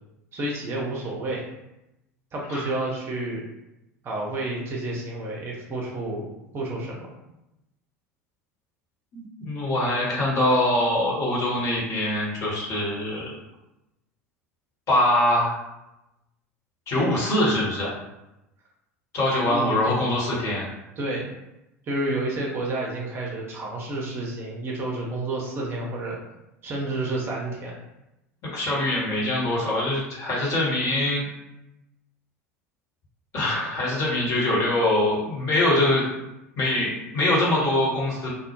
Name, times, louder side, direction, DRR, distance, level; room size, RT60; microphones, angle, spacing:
voice 1, 0.3-1.4 2.3-3.4 4.0-6.3 6.5-7.1 19.5-19.8 21.0-21.3 21.9-26.2 26.6-27.8, right 2 dB, 30° right, -2 dB, 0.6 m, -30 dB
voice 2, 9.1-13.4 14.9-15.6 16.9-17.9 19.1-20.7 28.5-31.3 33.3-36.0 36.6-38.3, left 1 dB, 40° left, -5 dB, 1.0 m, -23 dB
2.1 x 2.0 x 2.9 m, 0.91 s
figure-of-eight pair, 75°, 8 cm